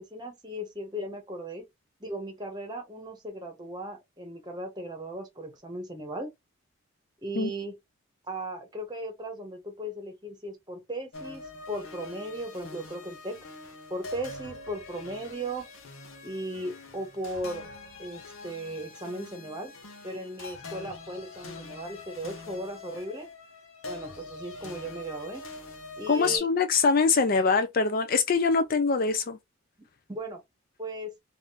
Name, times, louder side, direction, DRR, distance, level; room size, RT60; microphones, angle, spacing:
voice 1, 0.0-1.6 2.0-6.3 7.2-7.8 8.3-13.4 13.9-15.7 16.2-17.7 18.0-19.7 20.0-23.3 23.8-25.4 26.0-26.5 30.1-30.4 30.8-31.1, right 1 dB, 20° right, 1.0 m, -37 dB
sound 1, 11.1-26.4, left 3 dB, 70° left, 0.9 m, -44 dB
voice 2, 26.1-29.4, left 4 dB, 40° left, 0.3 m, -23 dB
3.5 x 2.5 x 2.4 m
head